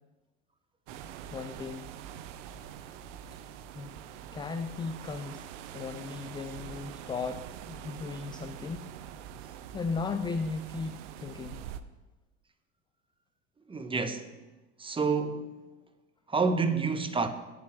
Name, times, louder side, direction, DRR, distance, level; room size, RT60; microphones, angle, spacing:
sound 1, 0.9-11.8, right 9 dB, 80° right, 0.6 m, -44 dB
voice 1, 1.3-1.9 3.7-3.9 4.3-5.5 5.7-8.9 9.7-11.7, left 4 dB, 15° left, 0.3 m, -36 dB
voice 2, 13.7-14.3 14.8-15.6 16.3-17.3, right 4 dB, 15° right, 0.7 m, -28 dB
8.2 x 4.9 x 7.3 m
hypercardioid pair, 90°, 36 cm